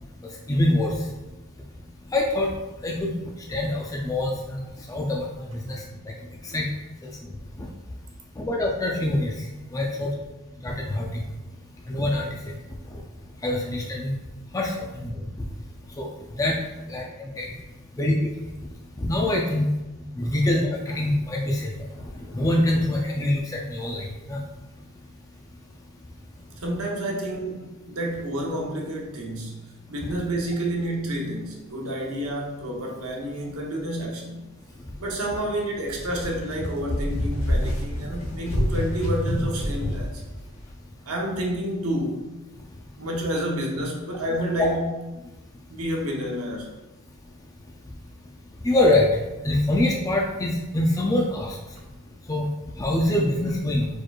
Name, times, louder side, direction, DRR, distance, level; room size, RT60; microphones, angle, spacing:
voice 1, 0.5-0.9 2.1-2.5 2.8-3.1 3.5-5.8 6.4-6.7 8.4-9.3 9.7-10.1 10.6-11.2 11.9-12.3 13.4-14.1 14.5-15.1 16.0-16.1 16.4-16.5 16.9-17.5 18.0-18.2 19.0-19.7 20.2-21.7 22.3-24.4 44.6-44.7 48.6-49.1 49.4-51.6 52.3-52.5 52.8-53.9, left 1 dB, 15° left, -1 dB, 0.4 m, -24 dB
voice 2, 26.6-29.6 29.9-34.4 35.0-40.2 41.0-42.2 43.0-44.8 45.7-46.7, equal, 75° right, 0 dB, 0.9 m, -29 dB
sound 1, 35.8-40.2, equal, 65° left, 1.1 m, -27 dB
4.5 x 4.4 x 2.4 m, 1.1 s
head